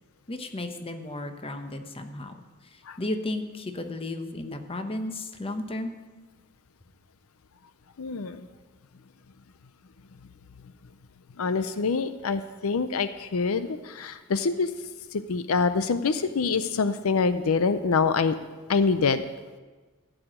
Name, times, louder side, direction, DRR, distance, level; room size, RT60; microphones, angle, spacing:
voice 1, 0.3-2.4 2.7-5.9, left 1 dB, 25° left, 6 dB, 0.9 m, -34 dB
voice 2, 8.0-8.4 11.4-14.7 15.1-18.4 18.7-19.2, left 4 dB, 85° left, 12 dB, 0.5 m, -25 dB
14.5 x 5.0 x 8.8 m, 1.3 s
head